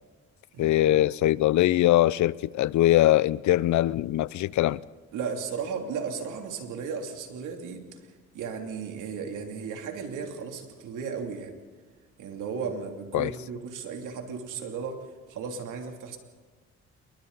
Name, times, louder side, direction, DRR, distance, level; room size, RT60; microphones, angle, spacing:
voice 1, 0.6-4.8 13.1-13.3, left 14 dB, 70° left, 0.6 m, -22 dB
voice 2, 5.1-11.5 12.2-16.2, right 5 dB, 85° right, 3.1 m, -35 dB
28.5 x 23.0 x 4.1 m
cardioid pair, 90°, 30 cm